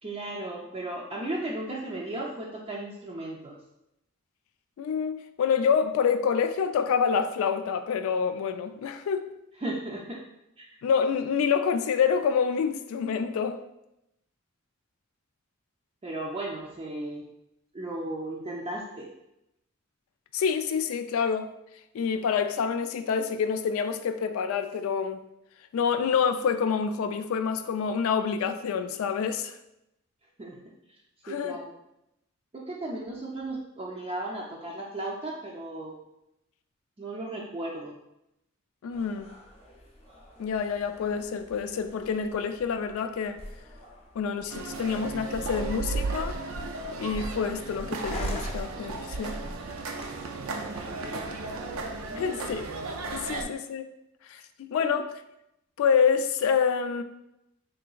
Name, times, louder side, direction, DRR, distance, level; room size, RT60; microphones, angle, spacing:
voice 1, 0.0-3.6 9.6-10.2 10.6-10.8 16.0-17.2 17.7-19.1 30.4-30.6 30.9-31.0 31.3-31.7 32.5-35.9 37.0-38.0 50.7-51.3 52.1-52.4 53.3-53.4 54.8-54.9, right 1 dB, 25° right, 0.4 m, -36 dB
voice 2, 4.8-9.2 10.8-13.6 20.3-21.5 21.9-25.2 25.7-29.5 31.2-31.6 38.8-39.3 40.4-43.4 44.2-46.4 47.0-49.4 52.1-52.7 53.1-53.8 54.3-54.4 54.7-55.1 55.8-57.0, left 6 dB, 85° left, 0.3 m, -27 dB
sound 1, 38.9-52.2, left 1 dB, 30° left, 0.6 m, -47 dB
sound 2, 44.5-53.4, right 3 dB, 90° right, 0.4 m, -34 dB
3.8 x 3.3 x 2.3 m
head